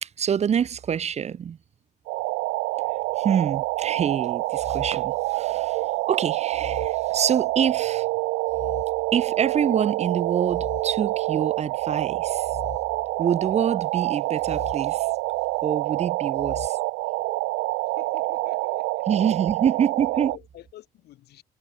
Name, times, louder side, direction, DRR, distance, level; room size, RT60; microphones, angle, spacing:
voice 1, 0.0-1.6 3.2-8.1 9.1-12.5 13.2-15.1 15.6-16.8 19.1-20.3, right 8 dB, 40° right, 1.2 m, -26 dB
sound 1, 2.1-20.4, right 23 dB, 90° right, 0.5 m, -27 dB
sound 2, 3.5-3.9 4.5-5.8 6.5-7.8 8.5-9.8 10.4-11.7 12.4-13.7 14.4-15.7 16.3-16.7, left 9 dB, 40° left, 0.7 m, -43 dB
voice 2, 17.8-19.1 20.1-21.4, left 14 dB, 75° left, 5.7 m, -48 dB
cardioid pair, 110°, 17 cm